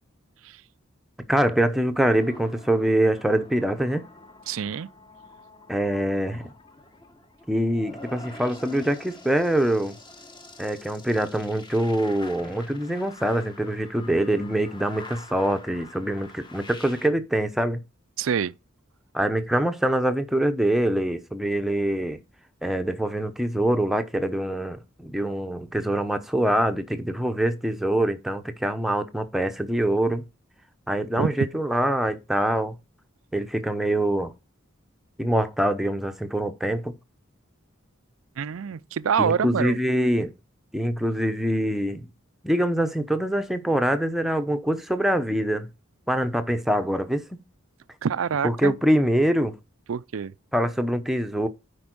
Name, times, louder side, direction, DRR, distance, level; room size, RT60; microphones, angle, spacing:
voice 1, 1.3-4.0 5.7-6.5 7.5-10.0 10.6-17.8 19.1-22.2 22.6-30.2 30.9-32.7 33.3-34.3 35.2-36.9 39.2-40.3 40.7-42.1 42.4-45.7 46.1-47.2 48.4-49.6 50.5-51.5, right 1 dB, ahead, 0.9 m, -24 dB
sound 1, 2.1-17.1, left 2 dB, 25° left, 1.4 m, -46 dB
voice 2, 4.5-4.9 18.2-18.6 31.2-31.3 38.4-39.8 48.0-48.8 49.9-50.3, right 7 dB, 80° right, 0.4 m, -26 dB
8.6 x 5.3 x 6.1 m
head